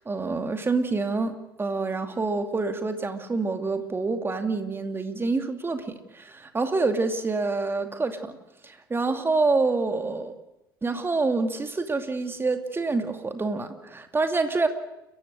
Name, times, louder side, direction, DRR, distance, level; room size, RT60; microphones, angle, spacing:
voice 1, 0.0-8.4 8.6-10.3 10.8-14.7, right 3 dB, 20° right, 6 dB, 2.5 m, -27 dB
30.0 x 15.0 x 6.5 m, 0.91 s
hypercardioid pair, 65°, 12 cm